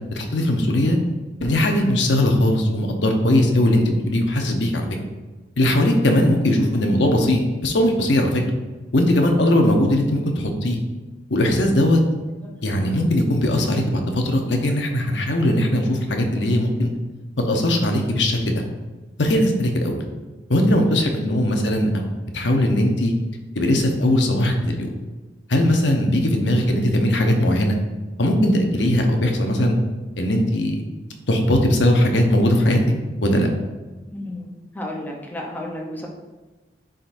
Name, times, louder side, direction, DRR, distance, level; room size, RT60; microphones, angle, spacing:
voice 1, 0.2-1.0 1.4-4.9 5.6-8.4 8.9-10.8 11.3-12.0 12.6-16.9 17.4-18.4 19.2-19.9 20.5-22.1 22.3-23.1 23.6-24.9 25.5-27.8 28.2-29.8 30.2-30.8 31.3-32.8 33.2-33.5, left 1 dB, 85° left, 3 dB, 0.9 m, -19 dB
voice 2, 34.1-34.5 34.7-36.1, left 1 dB, 10° left, 0 dB, 0.8 m, -33 dB
10.0 x 3.9 x 2.6 m, 1.2 s
head